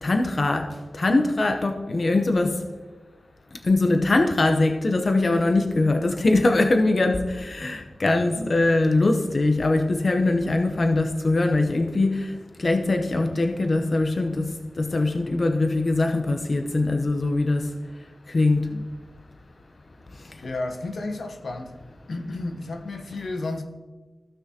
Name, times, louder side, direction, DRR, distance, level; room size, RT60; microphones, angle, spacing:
voice 1, 0.0-2.6 3.6-17.7 18.3-18.7 20.2-20.4, left 2 dB, 50° left, 4 dB, 0.7 m, -22 dB
voice 2, 20.4-21.8 22.1-23.6, left 2 dB, 80° left, 5 dB, 0.9 m, -32 dB
15.5 x 6.1 x 2.8 m, 1.3 s
wide cardioid pair, 95°, 0 cm